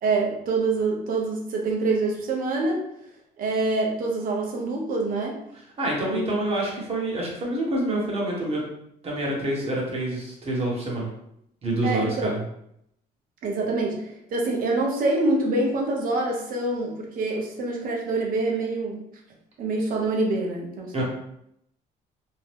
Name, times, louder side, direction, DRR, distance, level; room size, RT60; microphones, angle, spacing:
voice 1, 0.0-2.8 3.4-5.4 6.1-6.2 11.8-12.3 13.4-19.0 19.6-20.9, right 2 dB, 60° right, -1 dB, 0.8 m, -25 dB
voice 2, 5.8-8.6 9.0-11.1 11.6-12.4 20.9-21.0, right 1 dB, 35° right, -4 dB, 1.2 m, -27 dB
2.8 x 2.2 x 3.3 m, 0.76 s
cardioid pair, 110°, 17 cm